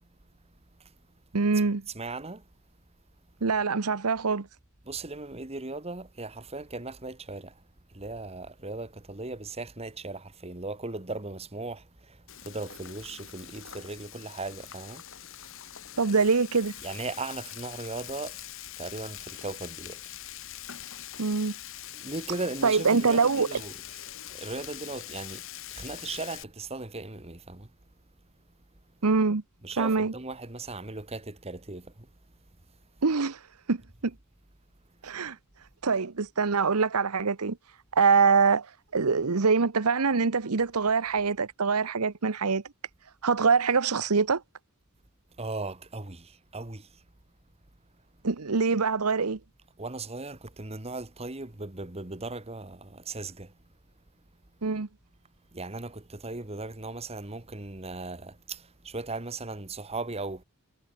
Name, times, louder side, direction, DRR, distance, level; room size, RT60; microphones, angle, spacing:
voice 1, 1.3-1.8 3.4-4.5 16.0-16.7 21.2-21.5 22.6-23.6 29.0-29.4 29.8-30.1 33.0-33.4 33.7-34.1 35.0-35.4 35.8-37.6 37.9-38.7 38.9-42.6 43.2-44.4 48.2-49.4 54.6-54.9, right 4 dB, 85° right, 1.0 m, -24 dB
voice 2, 1.9-2.4 4.8-7.6 7.9-15.1 16.8-18.4 18.8-20.0 21.9-23.7 24.3-25.4 25.7-27.7 29.6-32.1 45.4-47.0 49.8-53.5 55.5-60.4, right 3 dB, 30° right, 1.7 m, -38 dB
Frying (food), 12.3-26.4, left 12 dB, 60° left, 3.2 m, -43 dB
head